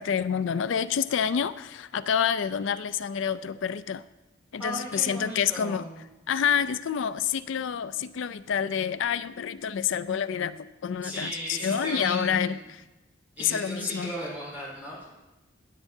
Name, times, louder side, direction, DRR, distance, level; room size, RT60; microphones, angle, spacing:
voice 1, 0.0-4.0 4.5-5.9 6.3-12.8 13.4-14.1, left 8 dB, 70° left, 15 dB, 0.4 m, -28 dB
voice 2, 4.6-6.0 11.0-12.7 13.4-15.1, equal, 10° right, -7 dB, 4.0 m, -36 dB
16.5 x 8.2 x 2.7 m, 1.0 s
head